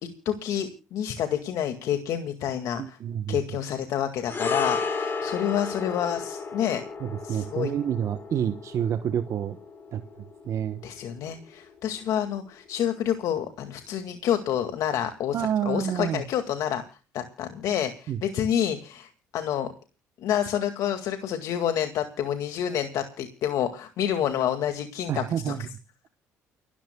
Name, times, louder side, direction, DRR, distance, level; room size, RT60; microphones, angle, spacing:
voice 1, 0.3-3.0 3.3-6.8 7.2-7.7 10.8-19.7 20.2-25.7, left 10 dB, 70° left, 7 dB, 2.0 m, -28 dB
voice 2, 2.8-3.4 7.0-9.6 9.9-10.0 10.4-10.8 15.3-16.2 18.1-18.2 25.1-25.6, right 9 dB, 55° right, 10 dB, 1.0 m, -28 dB
sound 1, 4.2-12.7 13.0-13.2, left 4 dB, 35° left, 5.1 m, -34 dB
29.5 x 13.5 x 2.3 m, 0.34 s
supercardioid pair, 85°, 6 cm